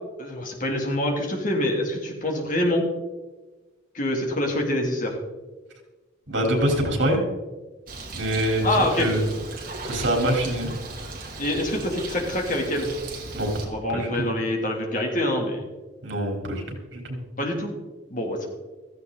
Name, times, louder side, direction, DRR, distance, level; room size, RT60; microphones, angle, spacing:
voice 1, 0.2-2.9 3.9-5.1 8.6-9.1 11.4-12.9 13.6-15.6 17.4-17.7 18.1-18.5, left 1 dB, 45° left, 1 dB, 3.1 m, -25 dB
voice 2, 6.3-7.2 8.1-9.2 9.8-10.7 13.3-13.6 13.9-14.3 16.0-17.2, right 1 dB, 75° right, 1 dB, 4.1 m, -25 dB
Bird, 7.9-13.7, right 2 dB, 50° right, 3.1 m, -37 dB
16.0 x 14.5 x 4.1 m, 1.2 s
head